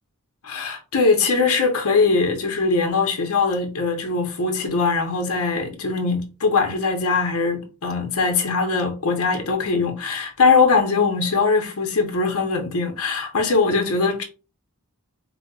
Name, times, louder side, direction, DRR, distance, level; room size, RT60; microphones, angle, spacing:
voice 1, 0.4-14.2, left 4 dB, 75° left, 0.7 m, -21 dB
4.9 x 2.1 x 2.3 m
head